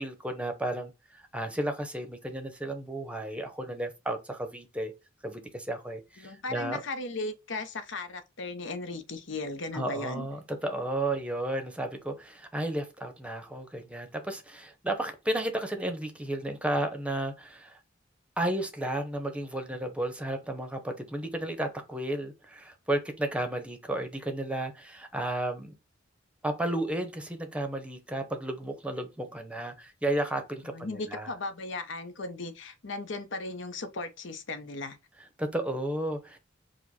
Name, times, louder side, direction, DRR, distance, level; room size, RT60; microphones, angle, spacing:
voice 1, 0.0-4.9 5.2-6.8 9.7-17.7 18.4-25.7 26.4-31.3 35.4-36.4, right 1 dB, 5° right, 0.8 m, -33 dB
voice 2, 6.2-10.3 30.6-35.0, left 3 dB, 65° left, 0.8 m, -36 dB
4.9 x 2.2 x 4.1 m
head